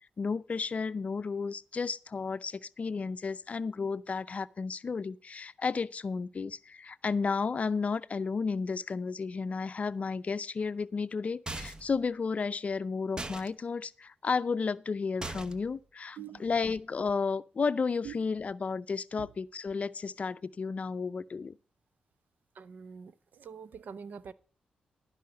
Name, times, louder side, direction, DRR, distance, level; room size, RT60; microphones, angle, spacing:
voice 1, 0.2-21.5, left 5 dB, 50° left, 0.5 m, -33 dB
sound 1, 11.5-12.0 13.2-13.5 15.2-15.7, right 2 dB, 25° right, 0.9 m, -39 dB
voice 2, 22.6-23.1 23.4-24.3, right 7 dB, 75° right, 0.8 m, -44 dB
12.0 x 5.6 x 6.7 m
cardioid pair, 55°, 3 cm